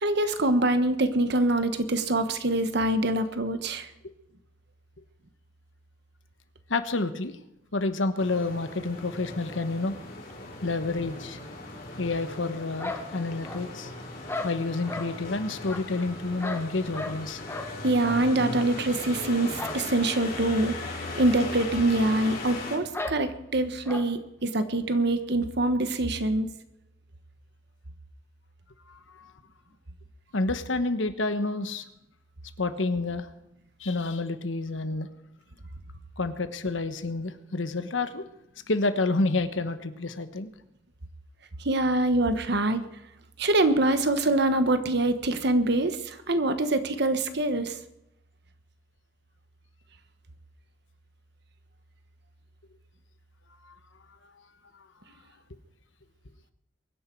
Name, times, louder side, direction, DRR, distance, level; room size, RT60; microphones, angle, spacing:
voice 1, 0.0-3.9 17.8-20.7 21.1-26.5 41.6-42.8 43.4-47.7, right 2 dB, 60° right, 10 dB, 1.3 m, -24 dB
voice 2, 6.7-7.4 7.7-10.0 10.6-11.4 12.0-13.9 14.4-17.4 28.9-29.3 30.3-31.8 32.6-33.3 33.8-35.1 36.2-38.2 38.7-40.5 53.6-53.7, left 3 dB, 90° left, 10 dB, 1.2 m, -29 dB
sound 1, 8.2-22.8, left 2 dB, 50° left, 3.3 m, -38 dB
sound 2, 12.8-13.8 14.3-15.1 15.7-17.2 17.5-17.7 18.0-18.2 18.5-18.7 19.5-19.8 20.1-20.2 20.6-20.7 21.5-21.7 21.9-22.0 22.9-23.2 23.8-24.1, left 2 dB, 15° left, 1.6 m, -36 dB
23.0 x 10.0 x 4.6 m, 0.85 s
head